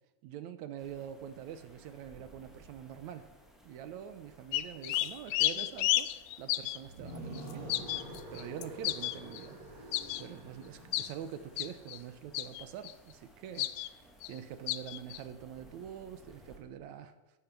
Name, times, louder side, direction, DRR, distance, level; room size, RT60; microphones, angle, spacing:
voice 1, 0.2-3.3 3.6-17.2, right 9 dB, 75° right, 11 dB, 2.2 m, -45 dB
sound 1, 0.8-16.6, right 1 dB, ahead, 2.1 m, -60 dB
sound 2, 4.5-6.8 7.4-9.5 9.9-10.2 10.9-11.1 11.6-12.0 12.3-12.9 13.6-13.9 14.2-14.4 14.7-15.2, left 15 dB, 80° left, 1.7 m, -32 dB
sound 3, 6.8-11.9, right 1 dB, 60° right, 4.3 m, -47 dB
11.5 x 10.5 x 8.2 m, 1.0 s
omnidirectional pair, 3.4 m